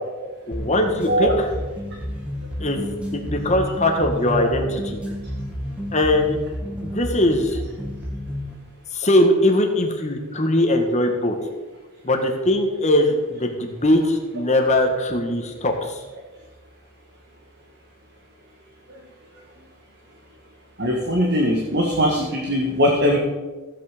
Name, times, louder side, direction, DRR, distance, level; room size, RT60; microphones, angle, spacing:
voice 1, 0.5-1.5 2.6-5.0 5.9-6.4 6.8-7.6 8.9-11.4 12.0-16.0, left 1 dB, 30° left, 3 dB, 1.7 m, -21 dB
sound 1, 0.5-8.5, equal, 5° right, 1.9 m, -31 dB
voice 2, 20.8-23.2, equal, 50° right, -1 dB, 1.8 m, -20 dB
15.0 x 8.7 x 5.2 m, 1.2 s
head